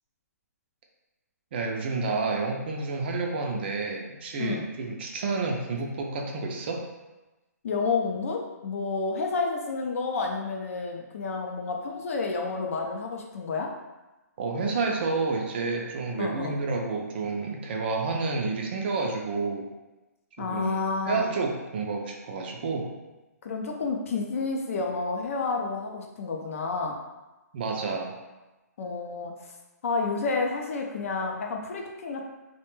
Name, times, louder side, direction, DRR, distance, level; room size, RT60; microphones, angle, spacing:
voice 1, 1.5-6.8 14.4-19.7 20.4-20.8 21.1-22.9 27.5-28.1, right 3 dB, 35° right, 1 dB, 0.3 m, -30 dB
voice 2, 7.6-13.7 16.2-16.6 20.4-21.3 23.4-27.0 28.8-29.3 29.8-32.3, left 4 dB, 55° left, 2 dB, 0.4 m, -30 dB
2.1 x 2.1 x 3.0 m, 1.1 s
hypercardioid pair, 160°, 9 cm